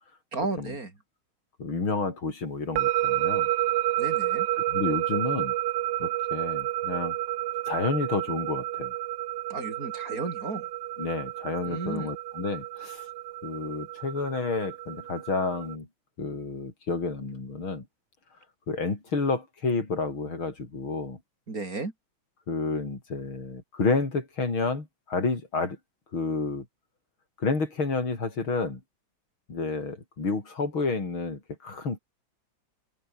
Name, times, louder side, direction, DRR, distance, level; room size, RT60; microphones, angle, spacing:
voice 1, 0.3-0.9 4.0-4.5 9.5-10.7 11.6-12.1 21.5-21.9, right 3 dB, 45° right, 4.1 m, -33 dB
voice 2, 1.6-3.5 4.7-5.5 6.0-7.2 7.7-8.9 11.0-13.0 13.4-15.9 16.2-17.9 18.7-21.2 22.5-25.8 26.1-26.7 27.4-28.8 29.5-32.0, left 3 dB, 90° left, 5.7 m, -30 dB
sound 1, 2.8-15.7, right 15 dB, 75° right, 1.2 m, -30 dB
omnidirectional pair, 2.2 m